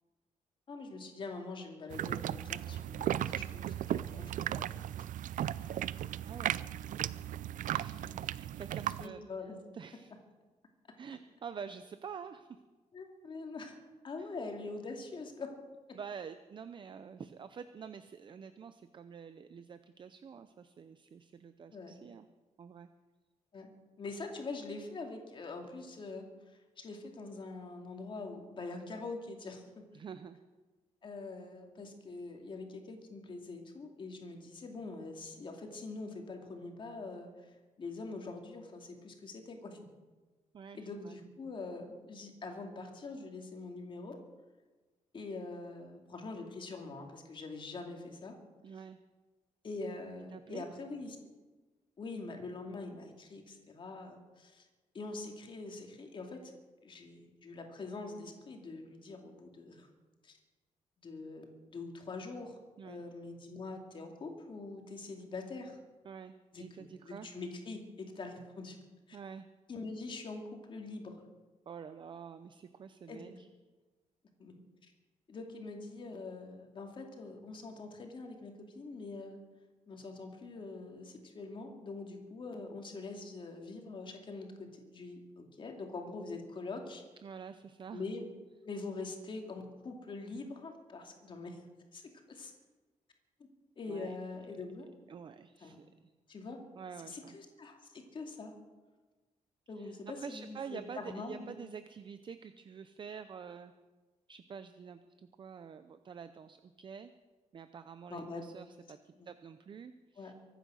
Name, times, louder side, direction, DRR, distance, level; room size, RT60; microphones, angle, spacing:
voice 1, 0.7-4.7 5.6-5.8 8.1-8.2 9.0-9.6 12.9-13.8 14.0-15.5 21.7-22.0 23.5-23.7 24.0-29.7 31.0-39.9 40.7-44.2 45.1-48.3 49.6-51.2 52.0-54.7 54.9-56.5 56.8-59.9 60.2-60.4 61.0-62.6 62.8-65.8 66.5-68.8 69.1-69.2 69.7-71.3 73.1-73.3 74.4-74.5 74.8-74.9 75.3-79.4 79.9-87.0 87.9-88.2 88.6-91.6 91.9-92.0 92.3-92.5 93.8-94.9 95.6-95.8 96.3-96.6 97.0-98.5 99.7-101.5 108.1-108.5 109.2-109.3 110.2-110.3, left 3 dB, 40° left, 3 dB, 2.6 m, -44 dB
sound 1, 1.9-9.1, right 11 dB, 80° right, 0.5 m, -36 dB
voice 2, 6.3-6.6 7.7-9.2 9.7-10.1 11.0-12.6 14.2-14.3 15.9-22.3 22.6-22.9 29.9-30.4 40.5-41.2 48.6-49.0 50.3-50.7 62.8-63.0 66.0-67.3 69.1-69.5 71.7-73.5 87.2-88.0 93.9-94.2 95.1-96.1 96.8-97.4 99.8-103.7 104.3-107.1 107.5-110.3, right 6 dB, 40° right, 11 dB, 0.6 m, -47 dB
24.0 x 9.3 x 6.4 m, 1.3 s
wide cardioid pair, 170°, 13 cm